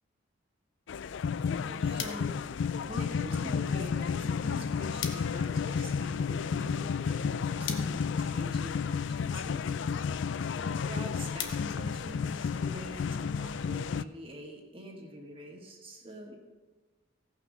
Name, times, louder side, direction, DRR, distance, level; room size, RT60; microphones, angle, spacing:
sound 1, 0.9-14.0, left 6 dB, 60° left, 0.3 m, -32 dB
voice 1, 1.5-2.3 2.8-16.4, equal, 25° right, 0 dB, 1.6 m, -45 dB
sound 2, 2.0-12.7, left 8 dB, 75° left, 1.2 m, -47 dB
16.0 x 6.0 x 6.1 m, 1.3 s
head